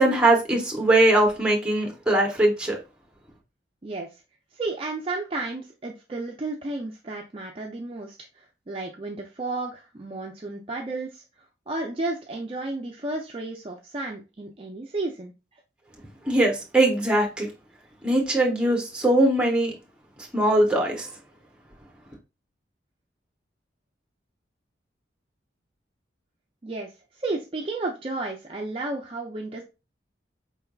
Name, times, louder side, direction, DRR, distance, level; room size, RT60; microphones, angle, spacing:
voice 1, 0.0-2.8 16.3-17.5 18.0-19.7 20.2-21.1, right 1 dB, 5° right, 0.8 m, -21 dB
voice 2, 3.8-4.2 4.5-11.2 11.7-15.6 26.6-26.9 27.2-29.6, right 2 dB, 30° right, 0.4 m, -32 dB
4.6 x 3.4 x 2.3 m
head